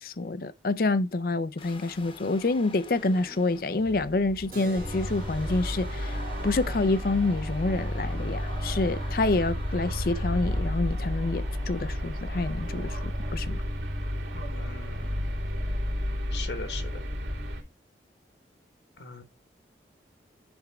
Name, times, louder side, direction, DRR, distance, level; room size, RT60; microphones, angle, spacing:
voice 1, 0.0-6.2 6.4-13.0 13.3-13.6, left 2 dB, 55° left, 0.5 m, -27 dB
sound 1, 1.6-13.6, left 2 dB, 30° left, 1.0 m, -47 dB
Keyboard (musical), 4.5-10.1, equal, 50° right, 1.9 m, -50 dB
sound 2, 4.7-17.6, equal, 90° right, 3.0 m, -31 dB
voice 2, 14.3-15.3 16.3-17.0 19.0-19.2, left 4 dB, 75° left, 1.3 m, -40 dB
10.5 x 3.6 x 4.9 m
head